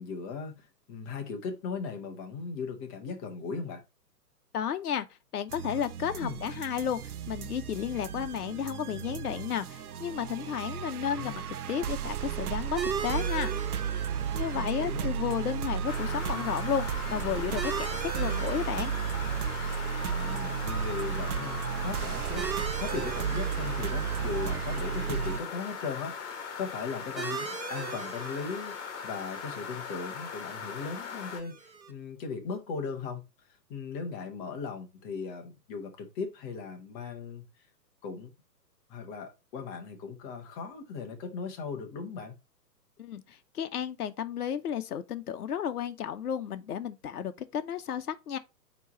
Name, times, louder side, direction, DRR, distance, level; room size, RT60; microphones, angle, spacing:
voice 1, 0.0-3.8 6.2-6.4 11.0-11.3 14.5-15.1 20.0-26.3 26.6-33.2 33.7-37.7 38.0-38.3 38.9-42.3, left 5 dB, 15° left, 0.6 m, -38 dB
voice 2, 4.5-5.1 5.3-13.5 14.3-18.9 43.0-48.4, left 9 dB, 65° left, 0.8 m, -33 dB
sound 1, 5.5-25.4, right 8 dB, 60° right, 0.7 m, -34 dB
sound 2, 12.8-31.9, right 6 dB, 85° right, 1.2 m, -41 dB
sound 3, 15.9-31.4, left 6 dB, 45° left, 1.2 m, -40 dB
9.1 x 3.0 x 4.0 m
figure-of-eight pair, 125°, 50 cm